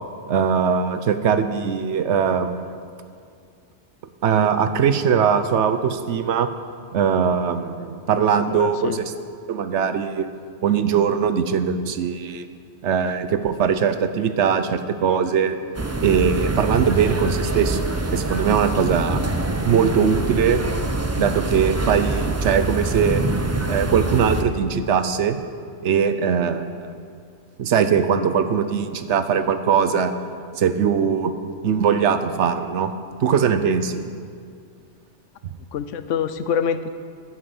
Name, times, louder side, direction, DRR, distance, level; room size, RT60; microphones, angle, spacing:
voice 1, 0.3-2.6 4.2-6.5 6.9-9.0 9.5-10.3 10.6-12.5 12.8-15.6 16.0-17.9 18.1-19.2 19.6-20.6 21.2-23.2 23.7-25.4 25.8-26.9 27.6-30.1 30.6-31.3 31.6-32.9 33.2-34.0, right 7 dB, 75° right, 10 dB, 1.0 m, -21 dB
voice 2, 8.5-9.0 35.7-36.9, left 7 dB, 90° left, 12 dB, 1.0 m, -25 dB
sound 1, 15.7-24.4, right 2 dB, 20° right, 0.4 m, -25 dB
10.0 x 9.5 x 7.8 m, 2.2 s
omnidirectional pair, 1.2 m